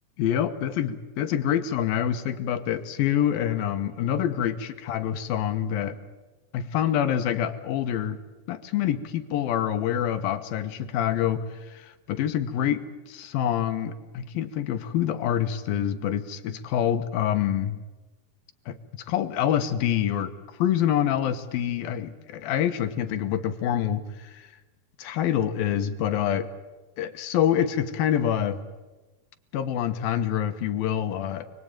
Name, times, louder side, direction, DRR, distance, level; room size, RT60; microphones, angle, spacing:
voice 1, 0.2-6.0 6.5-8.2 8.5-12.8 13.1-17.8 18.7-20.3 20.6-24.5 25.0-26.5 27.0-28.6 29.5-31.5, left 10 dB, 70° left, 9 dB, 2.8 m, -26 dB
29.5 x 21.0 x 9.0 m, 1.2 s
omnidirectional pair, 4.6 m